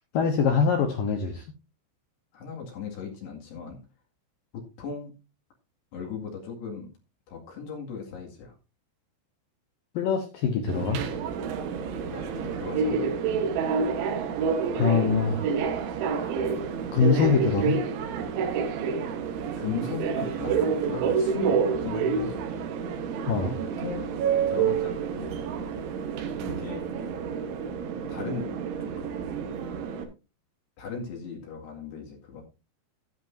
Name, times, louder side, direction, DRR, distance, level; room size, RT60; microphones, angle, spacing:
voice 1, 0.1-1.4 9.9-11.0 14.7-15.5 16.9-17.8 23.3-23.5, left 5 dB, 80° left, 5 dB, 2.0 m, -24 dB
voice 2, 2.3-3.8 4.5-5.1 5.9-6.9 7.3-8.5 12.0-13.1 19.6-22.4 23.4-23.5 23.8-24.1 24.5-25.4 26.4-26.9 28.1-29.1 30.8-32.4, left 5 dB, 65° left, 0 dB, 4.0 m, -37 dB
Subway metro underground, 10.7-30.0, right 6 dB, 75° right, 3.7 m, -28 dB
12.5 x 10.5 x 2.7 m, 0.29 s
omnidirectional pair, 5.6 m